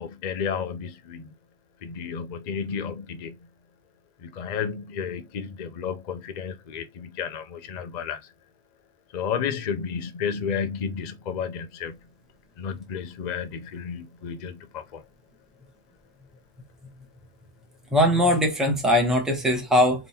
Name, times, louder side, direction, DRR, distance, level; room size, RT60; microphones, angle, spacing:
voice 1, 0.0-1.3 1.8-3.4 4.2-8.3 9.1-12.0 12.6-15.0, left 7 dB, 45° left, 0.6 m, -32 dB
voice 2, 17.9-20.1, left 1 dB, ahead, 1.0 m, -21 dB
3.5 x 3.0 x 4.2 m
omnidirectional pair, 1.4 m